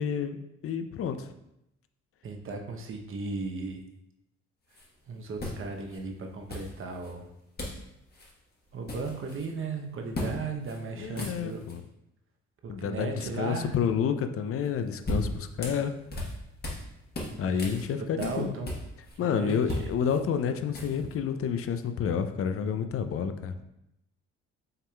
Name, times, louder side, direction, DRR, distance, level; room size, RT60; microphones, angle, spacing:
voice 1, 0.0-1.3 10.9-11.8 12.7-16.0 17.4-18.6 19.2-23.5, left 7 dB, 50° left, 9 dB, 0.4 m, -29 dB
voice 2, 2.2-3.8 5.1-7.3 8.7-11.7 12.6-13.7 17.3-18.7 19.2-19.9, right 4 dB, 45° right, 3 dB, 0.8 m, -36 dB
sound 1, 4.7-4.9 5.4-6.0 6.5-7.1 7.6-7.9 8.1-8.3 8.6-9.5 10.1-10.4 10.7-10.8 11.1-11.8 14.6-16.9 17.1-19.2 19.5-21.1, left 1 dB, 35° left, 1.2 m, -36 dB
5.5 x 3.5 x 2.2 m, 0.84 s
supercardioid pair, 65°, 29 cm